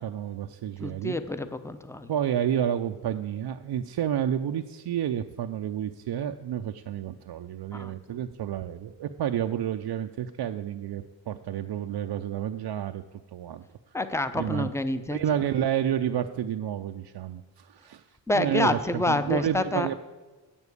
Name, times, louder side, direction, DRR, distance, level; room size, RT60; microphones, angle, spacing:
voice 1, 0.0-1.2 2.1-13.0 13.3-13.6 14.4-14.7 15.1-18.1 18.3-20.1, right 10 dB, 60° right, 6 dB, 0.5 m, -30 dB
voice 2, 0.8-2.1 7.7-8.0 13.9-15.2 18.3-19.9, left 2 dB, 5° left, 11 dB, 0.7 m, -28 dB
8.8 x 7.1 x 8.2 m, 1.3 s
cardioid pair, 75°, 45 cm